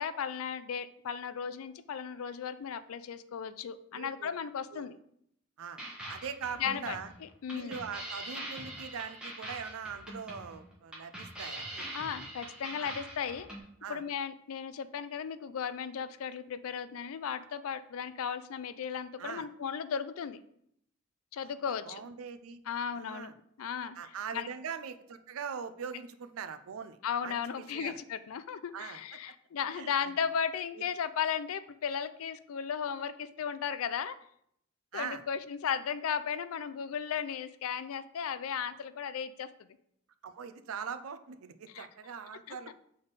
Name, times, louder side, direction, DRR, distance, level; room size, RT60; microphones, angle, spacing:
voice 1, 0.0-5.0 6.6-7.8 11.9-13.5 13.9-20.4 21.3-22.0 22.7-23.3 23.6-24.0 24.3-24.5 27.0-34.2 34.9-39.5 41.7-41.9 42.5-42.7, left 7 dB, 85° left, 13 dB, 0.4 m, -35 dB
voice 2, 3.9-4.3 4.7-4.9 5.6-5.8 6.1-7.1 7.5-11.8 12.8-12.9 13.8-14.0 19.2-19.5 21.4-22.6 22.9-23.3 24.0-27.0 27.2-28.0 28.7-29.0 29.7-29.9 30.8-30.9 34.9-35.2 40.2-42.7, right 6 dB, 90° right, 10 dB, 0.5 m, -41 dB
sound 1, 5.8-13.6, right 1 dB, 5° right, 1.2 m, -43 dB
6.9 x 3.5 x 4.0 m, 0.71 s
head